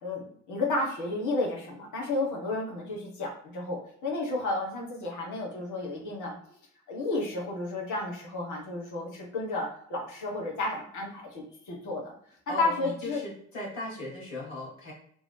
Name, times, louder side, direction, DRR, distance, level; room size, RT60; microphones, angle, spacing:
voice 1, 0.0-6.4 6.9-12.1 12.6-13.2, left 2 dB, 50° left, -1 dB, 1.3 m, -32 dB
voice 2, 12.5-14.9, left 1 dB, 75° left, -5 dB, 1.2 m, -38 dB
3.3 x 2.7 x 3.2 m, 0.63 s
figure-of-eight pair, 50°, 38 cm